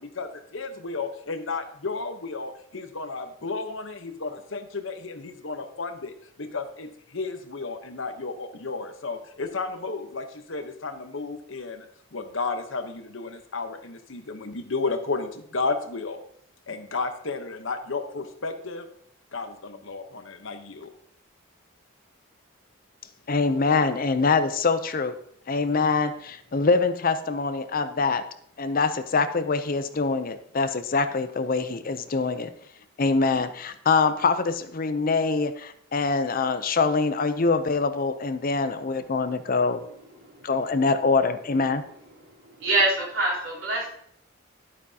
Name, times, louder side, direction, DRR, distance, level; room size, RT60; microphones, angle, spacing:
voice 1, 0.0-16.2 16.7-18.9 19.3-20.9, left 3 dB, 65° left, 7 dB, 1.0 m, -33 dB
voice 2, 23.3-25.1 25.5-28.2 28.6-32.5 33.0-39.8 40.4-41.8, left 4 dB, 40° left, 11 dB, 0.6 m, -24 dB
voice 3, 39.2-39.9 40.2-40.5 42.1-43.9, right 2 dB, 70° right, -5 dB, 3.7 m, -27 dB
11.5 x 8.6 x 2.8 m, 0.67 s
head